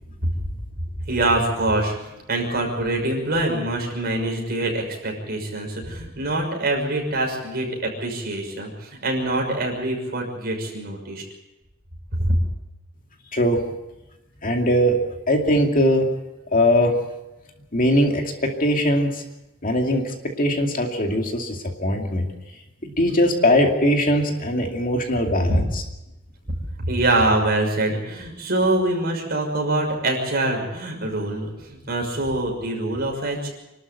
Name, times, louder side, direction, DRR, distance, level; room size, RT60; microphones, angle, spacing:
voice 1, 1.1-1.9 2.3-11.2 12.1-12.4 25.4-25.6 26.8-33.5, right 2 dB, 45° right, 1 dB, 6.2 m, -24 dB
voice 2, 14.4-15.0 15.3-16.1 16.5-16.9 17.7-19.2 19.6-22.3 22.8-25.8, equal, 40° left, 2 dB, 2.4 m, -20 dB
27.0 x 12.5 x 8.3 m, 0.99 s
head